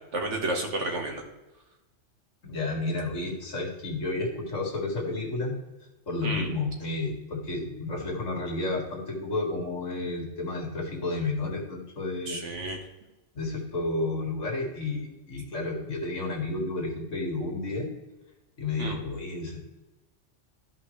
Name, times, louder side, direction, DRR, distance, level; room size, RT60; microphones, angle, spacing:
voice 1, 0.1-1.2 6.2-6.5 12.3-12.8 18.8-19.0, right 2 dB, 70° right, 2 dB, 1.8 m, -31 dB
voice 2, 2.4-5.5 6.1-12.4 13.3-17.9 18.6-19.6, left 2 dB, 85° left, -1 dB, 2.4 m, -31 dB
13.5 x 5.5 x 3.2 m, 1.0 s
omnidirectional pair, 1.3 m